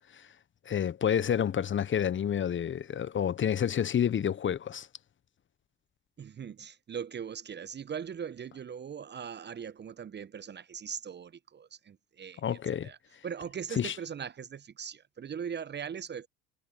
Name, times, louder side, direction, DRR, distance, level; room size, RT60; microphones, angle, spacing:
voice 1, 0.6-4.9 12.4-12.9 13.8-13.9, left 9 dB, 30° left, 1.1 m, -29 dB
voice 2, 6.2-13.0 13.2-16.3, right 7 dB, 30° right, 1.0 m, -40 dB
hypercardioid pair, 65°, 38 cm